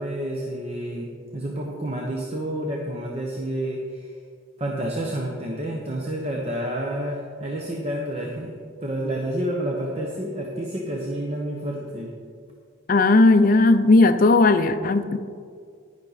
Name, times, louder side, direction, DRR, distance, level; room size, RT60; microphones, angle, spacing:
voice 1, 0.0-4.1 4.6-8.5 8.8-12.1, right 1 dB, 30° right, -1 dB, 1.0 m, -29 dB
voice 2, 12.9-15.2, left 2 dB, 45° left, 10 dB, 0.5 m, -16 dB
10.5 x 10.5 x 4.1 m, 2.2 s
head